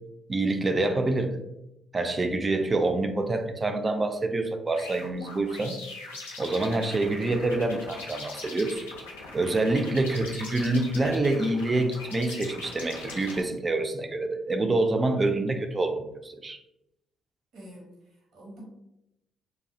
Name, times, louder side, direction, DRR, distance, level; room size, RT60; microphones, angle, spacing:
voice 1, 0.3-1.4 1.9-5.8 6.4-8.8 9.3-16.6, right 2 dB, 30° right, 6 dB, 0.4 m, -26 dB
sound 1, 4.7-13.4, left 2 dB, 90° left, 0.4 m, -41 dB
voice 2, 17.5-18.6, equal, 65° right, -3 dB, 0.8 m, -47 dB
2.2 x 2.0 x 2.7 m, 0.87 s
hypercardioid pair, 45°, 0 cm